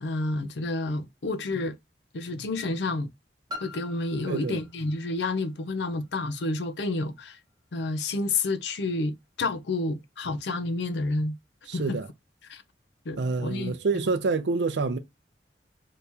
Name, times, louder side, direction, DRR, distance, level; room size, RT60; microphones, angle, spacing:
voice 1, 0.0-1.8 2.1-3.1 3.6-7.4 7.7-11.4 11.7-12.0 12.5-12.6 13.1-14.1, left 2 dB, 75° left, 0.5 m, -30 dB
Piano, 3.5-8.9 9.7-9.8, left 2 dB, 25° right, 0.9 m, -46 dB
voice 2, 4.3-4.6 11.7-12.1 13.2-15.0, right 4 dB, 75° right, 0.5 m, -27 dB
3.0 x 2.8 x 3.4 m
head